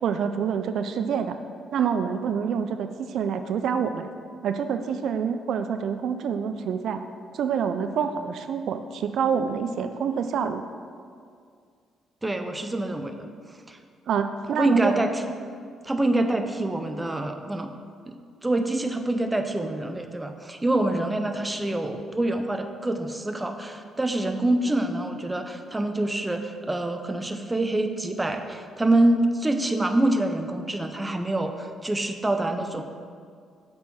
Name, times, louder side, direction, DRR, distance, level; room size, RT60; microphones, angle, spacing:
voice 1, 0.0-1.4 1.7-4.1 4.4-7.0 7.3-10.6 14.1-14.9, right 7 dB, 70° right, 8 dB, 0.3 m, -27 dB
voice 2, 12.2-13.3 13.7-13.8 14.5-15.2 15.8-17.7 18.1-32.8, right 1 dB, 15° right, 6 dB, 0.6 m, -26 dB
7.6 x 4.5 x 5.5 m, 2.2 s
cardioid pair, 90°, 0 cm